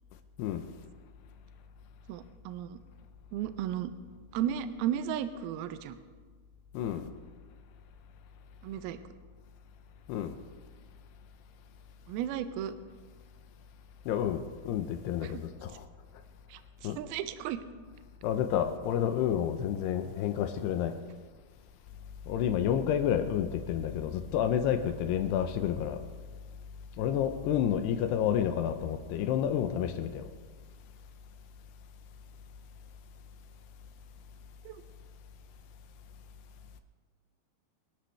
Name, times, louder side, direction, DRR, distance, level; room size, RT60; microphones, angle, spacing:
voice 1, 2.1-2.8 3.3-3.9 4.3-6.0 8.6-9.0 12.1-12.7 15.2-15.4 16.5-17.6 34.7-34.8, right 10 dB, 80° right, 2.3 m, -34 dB
voice 2, 6.7-7.1 10.1-10.3 14.1-15.9 16.8-17.0 18.2-20.9 22.3-26.0 27.0-30.3, left 9 dB, 80° left, 2.7 m, -30 dB
25.0 x 11.5 x 3.4 m
omnidirectional pair, 5.0 m